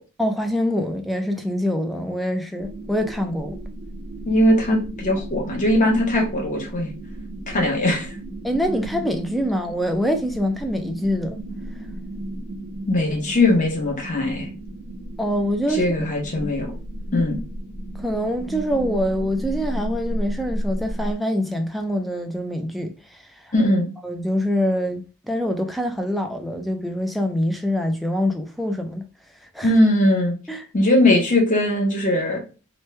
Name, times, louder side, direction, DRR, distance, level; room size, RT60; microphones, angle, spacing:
voice 1, 0.2-3.6 7.6-7.7 8.4-11.4 15.2-15.8 16.4-16.5 18.0-23.2 24.0-29.0 29.5-29.7 30.5-30.6, equal, ahead, 0.3 m, -25 dB
sound 1, 2.6-21.2, right 1 dB, 70° right, 0.7 m, -34 dB
voice 2, 4.2-6.9 7.5-8.1 12.9-14.5 15.7-16.7 17.1-17.4 23.5-23.9 29.6-30.3 30.7-32.4, left 1 dB, 35° left, 1.0 m, -20 dB
3.0 x 2.2 x 3.1 m
head